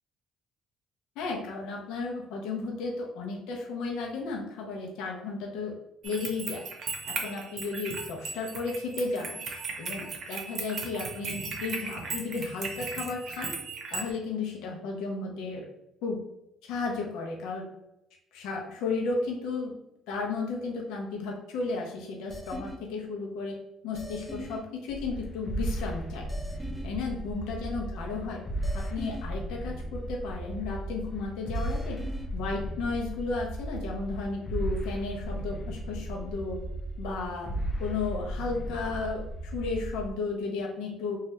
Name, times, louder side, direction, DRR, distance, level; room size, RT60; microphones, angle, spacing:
voice 1, 1.2-5.8 6.0-6.6 7.1-9.4 9.8-13.6 13.9-15.6 16.0-16.2 16.6-17.6 18.3-19.7 20.1-23.6 23.8-26.2 26.8-28.4 28.7-32.0 32.3-36.6 37.0-37.5 37.8-41.2, left 3 dB, 85° left, 0 dB, 0.6 m, -34 dB
sound 1, 6.0-14.1, right 4 dB, 60° right, 0.7 m, -37 dB
sound 2, 22.3-22.8 23.9-24.6 26.3-26.9 28.6-29.2 31.5-32.3, equal, 5° right, 0.6 m, -40 dB
sound 3, 24.9-40.1, right 1 dB, 35° left, 0.5 m, -35 dB
2.7 x 2.3 x 3.1 m, 0.86 s
cardioid pair, 90°, 0 cm